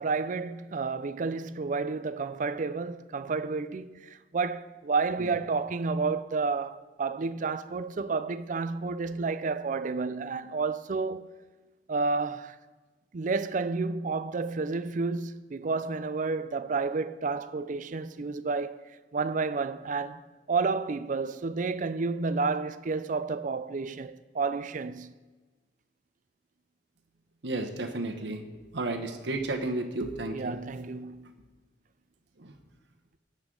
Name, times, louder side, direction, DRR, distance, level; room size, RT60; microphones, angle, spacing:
voice 1, 0.0-11.3 11.9-12.6 13.1-18.8 19.1-25.1 30.3-31.3, right 4 dB, 45° right, 0.4 m, -30 dB
voice 2, 27.4-28.4 28.7-30.6 32.4-32.5, right 2 dB, 70° right, 1.1 m, -32 dB
16.0 x 8.9 x 3.8 m
head